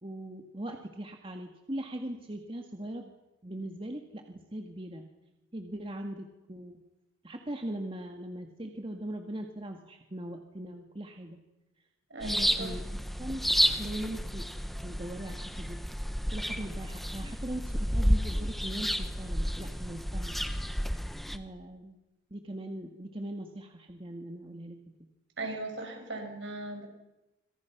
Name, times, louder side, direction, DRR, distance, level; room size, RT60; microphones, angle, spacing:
voice 1, 0.0-3.1 3.4-5.1 5.5-6.8 7.2-11.4 12.2-13.4 13.8-14.5 14.8-15.8 16.3-20.4 21.3-22.0 22.3-24.8, right 1 dB, 30° right, 4 dB, 1.9 m, -40 dB
voice 2, 12.1-12.7 25.4-26.9, right 2 dB, 65° right, 3 dB, 6.5 m, -38 dB
sound 1, 12.2-21.4, equal, ahead, 1.2 m, -31 dB
27.5 x 26.0 x 6.1 m, 0.97 s
head